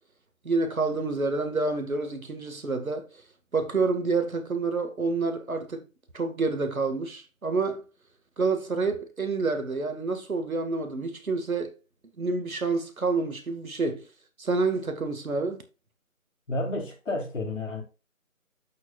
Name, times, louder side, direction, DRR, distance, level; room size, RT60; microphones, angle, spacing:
voice 1, 0.4-3.2 3.5-5.9 6.1-7.8 8.4-11.7 12.2-14.0 14.4-15.6, right 3 dB, 80° right, 2.2 m, -28 dB
voice 2, 16.5-17.8, left 2 dB, 65° left, 4.5 m, -31 dB
8.2 x 7.2 x 2.5 m
figure-of-eight pair, 165°, 41 cm